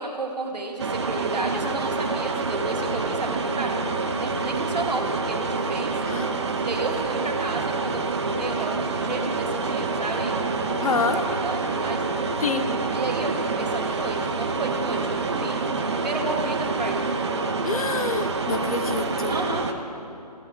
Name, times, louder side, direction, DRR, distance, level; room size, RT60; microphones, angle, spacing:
voice 1, 0.0-6.0 6.6-12.0 12.9-17.0 19.3-19.7, right 2 dB, 80° right, 1 dB, 1.9 m, -32 dB
sound 1, 0.8-19.7, right 3 dB, 40° right, 0.7 m, -27 dB
voice 2, 10.8-11.2 12.4-12.7 17.6-19.3, left 5 dB, 60° left, 9 dB, 0.7 m, -27 dB
15.0 x 6.9 x 4.9 m, 2.7 s
figure-of-eight pair, 160°, 21 cm